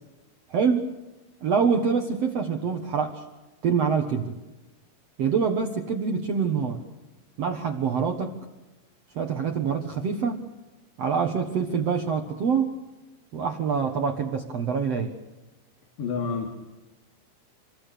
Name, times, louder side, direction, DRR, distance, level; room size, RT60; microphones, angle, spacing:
voice 1, 0.5-0.9 1.4-3.2 3.6-4.3 5.2-6.8 7.4-8.4 9.1-10.5 11.0-12.8 13.3-15.2, right 6 dB, 85° right, 4 dB, 1.4 m, -25 dB
voice 2, 16.0-16.5, left 5 dB, 70° left, 1 dB, 4.8 m, -28 dB
27.5 x 23.5 x 6.9 m, 1.1 s
omnidirectional pair, 5.3 m